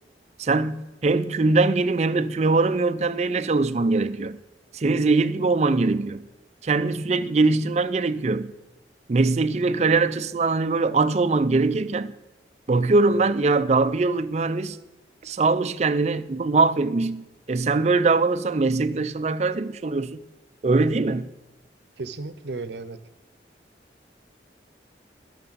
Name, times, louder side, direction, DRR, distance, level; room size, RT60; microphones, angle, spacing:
voice 1, 0.4-4.4 4.7-6.3 6.6-8.5 9.1-12.1 12.7-14.8 15.2-20.2 20.6-21.3, right 3 dB, 40° right, 0.4 m, -22 dB
voice 2, 22.0-23.0, right 3 dB, 75° right, 0.7 m, -34 dB
18.0 x 6.6 x 4.0 m
head